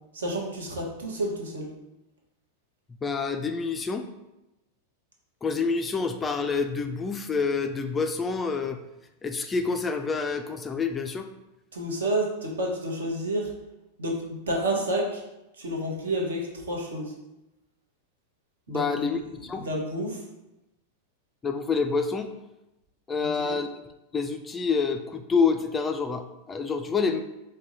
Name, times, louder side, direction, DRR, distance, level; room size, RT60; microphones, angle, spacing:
voice 1, 0.1-1.7 11.7-13.5 14.0-15.2 15.6-17.1 18.7-19.2 19.6-20.2 23.2-23.6, right 1 dB, 65° right, 0 dB, 1.0 m, -30 dB
voice 2, 3.0-4.1 5.4-8.8 9.2-11.3 18.7-19.7 21.4-22.3 23.1-23.7 24.1-27.2, left 5 dB, 15° left, 6 dB, 0.3 m, -27 dB
4.7 x 2.2 x 4.0 m, 0.94 s
figure-of-eight pair, 90°, 0 cm